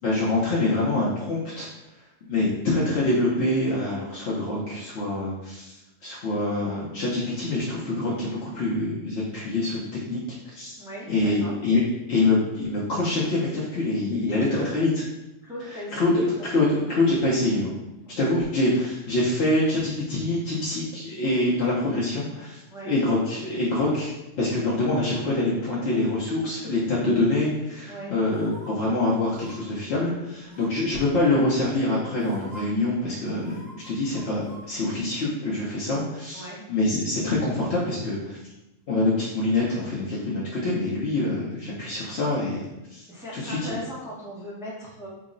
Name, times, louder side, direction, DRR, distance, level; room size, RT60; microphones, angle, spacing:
voice 1, 0.0-1.7 2.2-5.7 6.0-10.2 10.5-10.8 11.1-11.8 12.1-14.9 15.7-17.7 18.2-24.1 24.4-38.4 38.9-42.6 42.9-43.0 43.3-43.6, left 2 dB, 60° left, -6 dB, 0.9 m, -25 dB
voice 2, 10.8-11.5 14.3-14.8 15.4-16.5 22.7-22.9 27.9-28.1 30.5-30.7 36.3-36.6 43.1-45.1, equal, 5° right, -6 dB, 0.6 m, -38 dB
sound 1, 28.3-28.7 29.3-29.6 30.5-30.9 31.7-31.8 32.2-32.6 33.4-34.6 35.0-35.1, right 2 dB, 35° right, 1.2 m, -46 dB
3.7 x 2.0 x 3.7 m, 0.98 s
omnidirectional pair, 1.3 m